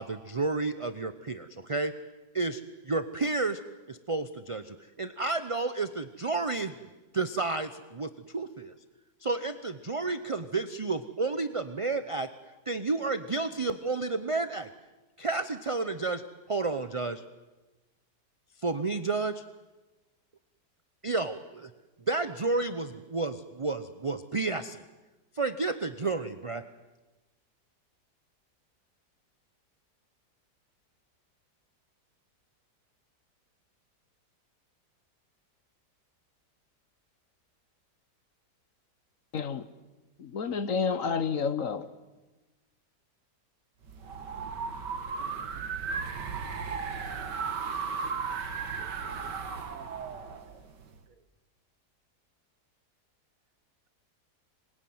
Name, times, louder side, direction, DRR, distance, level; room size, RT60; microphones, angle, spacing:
voice 1, 0.0-2.0 2.3-3.6 3.9-6.7 7.1-8.7 9.2-12.3 12.7-14.7 15.2-17.2 18.6-19.4 21.0-21.7 22.1-24.8 25.3-26.6, right 3 dB, 30° right, 0.6 m, -31 dB
voice 2, 39.3-39.7 40.2-41.9, left 5 dB, 55° left, 1.4 m, -30 dB
sound 1, 43.8-51.0, right 5 dB, 85° right, 2.2 m, -35 dB
voice 3, 48.8-50.2, right 7 dB, 55° right, 1.5 m, -57 dB
26.0 x 21.0 x 9.4 m
omnidirectional pair, 1.8 m